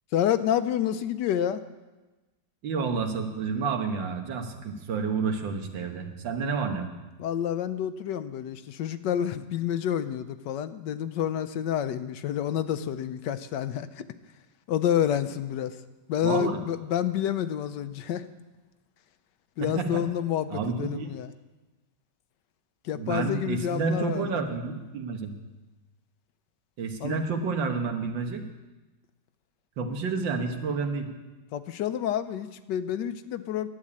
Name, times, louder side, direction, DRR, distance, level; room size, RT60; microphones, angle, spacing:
voice 1, 0.1-1.6 7.2-14.1 14.7-15.8 16.1-18.3 19.6-21.3 22.8-24.3 27.0-27.2 31.5-33.7, left 10 dB, 75° left, 12 dB, 1.3 m, -29 dB
voice 2, 2.6-6.9 16.2-16.6 19.6-20.0 20.5-21.1 22.9-25.4 26.8-28.4 29.8-31.1, right 4 dB, 85° right, 5 dB, 2.0 m, -30 dB
11.5 x 9.0 x 8.6 m, 1.1 s
omnidirectional pair, 2.0 m